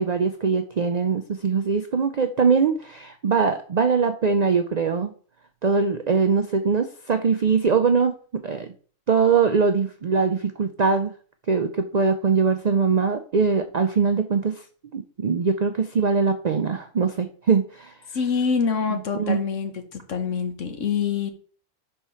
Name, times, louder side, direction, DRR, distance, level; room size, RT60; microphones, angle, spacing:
voice 1, 0.0-5.1 5.6-8.2 8.4-8.7 9.1-11.1 11.5-14.5 14.9-17.9 18.9-19.4, right 5 dB, 60° right, 7 dB, 0.4 m, -22 dB
voice 2, 18.1-21.3, left 6 dB, 65° left, 6 dB, 1.3 m, -25 dB
4.7 x 4.4 x 5.5 m, 0.42 s
omnidirectional pair, 1.4 m